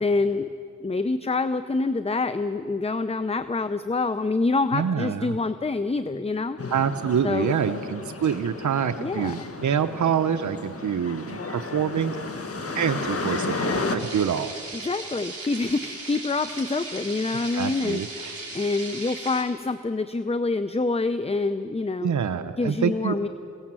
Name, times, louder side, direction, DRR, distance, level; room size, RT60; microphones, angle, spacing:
voice 1, 0.0-0.5 0.8-6.6 7.2-7.6 9.0-9.5 14.7-18.0 18.5-22.1 22.6-23.3, left 3 dB, 20° left, 12 dB, 0.6 m, -26 dB
voice 2, 4.7-5.4 6.7-12.2 12.7-14.5 17.5-18.3 22.0-23.1, right 7 dB, 70° right, 9 dB, 0.7 m, -26 dB
sound 1, 6.6-14.0, left 3 dB, 50° left, 1.7 m, -33 dB
sound 2, 14.0-19.4, right 2 dB, 50° right, 4.7 m, -37 dB
23.5 x 17.5 x 7.5 m, 2.6 s
cardioid pair, 60°, 30 cm